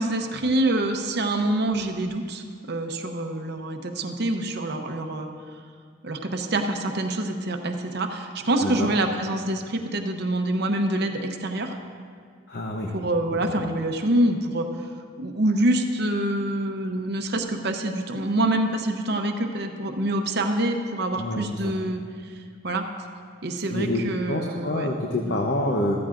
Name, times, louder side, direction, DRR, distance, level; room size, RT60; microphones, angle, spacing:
voice 1, 0.0-5.3 6.0-11.8 12.9-14.7 15.2-22.0 22.6-22.8 23.4-24.9 25.2-25.3, right 1 dB, 55° right, 4 dB, 0.8 m, -26 dB
voice 2, 12.5-12.9 21.2-21.7 23.7-26.0, left 1 dB, 55° left, 1 dB, 0.8 m, -27 dB
14.5 x 13.5 x 2.5 m, 2.1 s
head